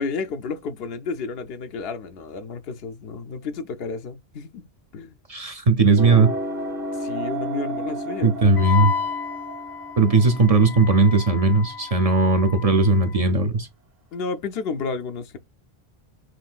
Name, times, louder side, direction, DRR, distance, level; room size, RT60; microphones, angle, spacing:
voice 1, 0.0-4.6 4.9-5.2 7.0-8.5 14.1-15.4, left 4 dB, 70° left, 0.9 m, -31 dB
voice 2, 5.3-6.4 8.2-8.9 10.0-13.7, right 3 dB, 40° right, 0.7 m, -18 dB
sound 1, 6.0-11.4, right 1 dB, 60° right, 1.7 m, -32 dB
Wind instrument woodwind instrument, 8.6-13.2, left 6 dB, 25° left, 0.6 m, -32 dB
6.1 x 2.6 x 2.4 m
omnidirectional pair, 1.0 m